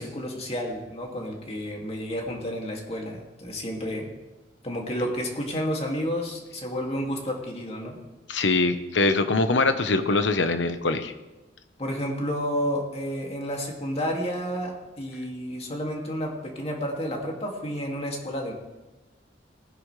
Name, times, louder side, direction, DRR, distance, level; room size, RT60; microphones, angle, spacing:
voice 1, 0.0-4.1 4.6-8.0 11.8-18.5, equal, 35° left, 0 dB, 2.3 m, -31 dB
voice 2, 8.3-11.1, left 3 dB, 85° left, 9 dB, 1.0 m, -23 dB
19.5 x 10.5 x 3.3 m, 1.1 s
head